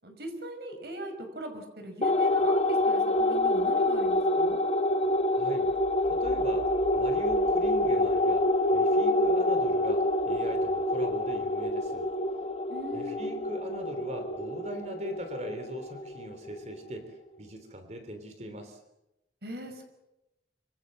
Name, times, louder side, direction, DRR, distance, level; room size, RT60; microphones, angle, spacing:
voice 1, 0.0-4.6 12.7-13.2 19.4-19.8, equal, 60° right, 6 dB, 5.7 m, -40 dB
sound 1, 2.0-16.8, left 1 dB, 35° left, 1.3 m, -27 dB
voice 2, 5.3-5.7 6.1-12.1 12.9-18.8, equal, 40° right, 7 dB, 3.4 m, -40 dB
26.5 x 25.0 x 7.7 m, 0.93 s
head